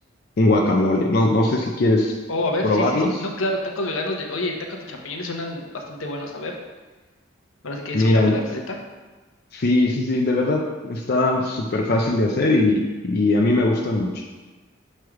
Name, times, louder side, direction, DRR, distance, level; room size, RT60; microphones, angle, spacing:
voice 1, 0.4-2.1 2.6-3.2 7.9-8.3 9.5-14.2, left 2 dB, 50° left, 0 dB, 0.5 m, -20 dB
voice 2, 2.3-6.6 7.6-8.8, left 1 dB, 80° left, 2 dB, 0.8 m, -28 dB
6.2 x 3.3 x 4.7 m, 1.2 s
head